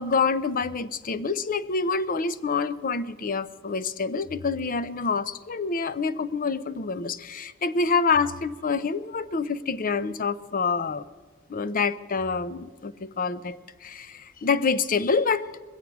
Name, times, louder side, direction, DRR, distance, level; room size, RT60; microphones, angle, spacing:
voice 1, 0.0-11.1 11.5-15.5, left 4 dB, 45° left, 14 dB, 0.6 m, -27 dB
22.5 x 8.1 x 6.0 m, 1.4 s
head